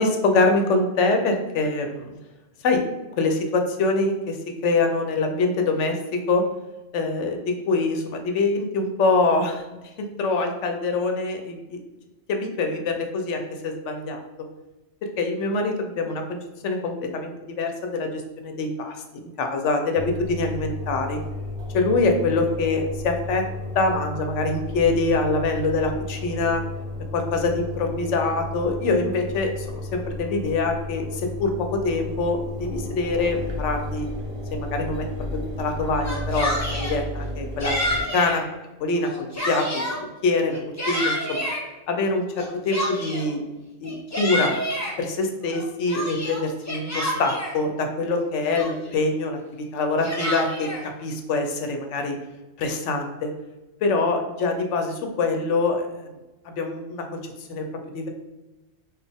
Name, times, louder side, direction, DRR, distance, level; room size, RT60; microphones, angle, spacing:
voice 1, 0.0-2.1 2.6-2.8 3.2-4.4 4.6-6.4 6.9-9.6 10.0-11.8 12.3-14.2 15.2-16.4 16.6-21.2 21.7-23.4 23.7-26.6 27.1-34.1 34.5-35.1 35.3-38.4 38.8-39.8 40.2-40.6 40.9-41.5 41.9-43.4 43.8-44.5 45.0-52.2 52.6-53.3 53.8-56.1 56.5-57.2 57.5-57.7 57.9-58.1, left 3 dB, 85° left, 4 dB, 0.9 m, -24 dB
Engine, 20.0-38.0, left 2 dB, 55° right, 1.1 m, -33 dB
Yell, 35.9-37.0 37.6-38.4 38.9-40.0 40.5-41.6 42.4-43.3 43.8-44.9 45.5-47.6 48.2-48.3 48.5-49.0 49.8-50.8, equal, 20° left, 0.5 m, -28 dB
4.0 x 2.4 x 3.4 m, 1.0 s
omnidirectional pair, 1.2 m